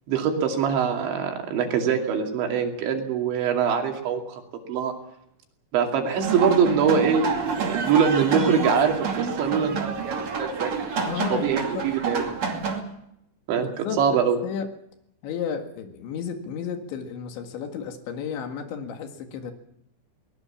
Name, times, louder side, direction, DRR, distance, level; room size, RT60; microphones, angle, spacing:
voice 1, 0.1-4.4 4.7-4.9 5.7-12.2 13.5-13.7 14.0-14.4, right 6 dB, 85° right, 3 dB, 4.9 m, -23 dB
sound 1, 6.2-12.8, right 5 dB, 40° right, 3.2 m, -28 dB
voice 2, 11.0-11.8 13.6-14.7 15.2-19.5, left 7 dB, 85° left, 6 dB, 4.3 m, -33 dB
22.5 x 19.5 x 7.2 m, 0.76 s
omnidirectional pair, 5.1 m